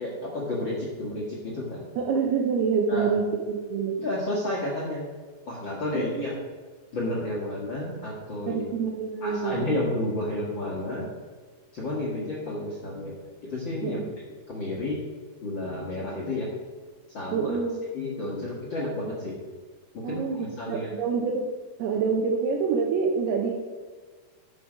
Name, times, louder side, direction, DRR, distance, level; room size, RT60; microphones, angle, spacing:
voice 1, 0.0-1.8 2.9-3.1 4.0-5.1 5.5-6.4 6.9-8.6 9.2-11.1 11.7-13.1 13.5-14.0 14.5-15.0 15.4-16.5 17.1-17.5 17.9-19.4 19.9-20.9, left 1 dB, 55° left, -4 dB, 1.3 m, -31 dB
voice 2, 2.0-4.0 5.9-6.3 8.5-9.8 13.8-14.1 17.3-17.8 20.0-21.5 21.8-23.6, right 5 dB, 75° right, 0 dB, 2.8 m, -27 dB
11.0 x 7.2 x 5.0 m, 1.5 s
omnidirectional pair, 4.9 m